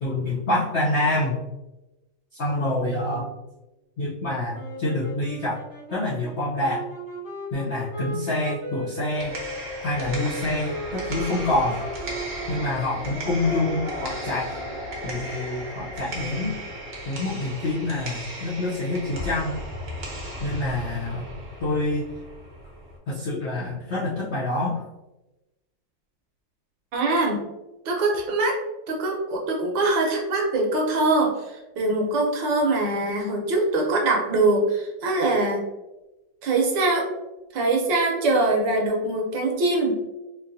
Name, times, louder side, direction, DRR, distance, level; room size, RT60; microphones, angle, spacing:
voice 1, 0.0-1.4 2.4-3.3 4.0-5.6 5.9-6.8 7.5-9.4 9.8-11.8 12.5-14.5 15.0-16.6 17.1-19.6 20.4-21.3 21.6-22.1 23.1-24.8, left 2 dB, 65° left, -8 dB, 0.7 m, -26 dB
sound 1, 4.5-15.0, right 1 dB, 30° left, 1.2 m, -37 dB
sound 2, 9.0-23.0, equal, 45° right, 0.8 m, -35 dB
voice 2, 26.9-27.4 27.8-28.5 28.9-35.6 36.4-37.1 37.5-40.0, right 2 dB, 70° right, 0 dB, 1.5 m, -23 dB
4.5 x 2.6 x 2.6 m, 1.0 s
omnidirectional pair, 2.1 m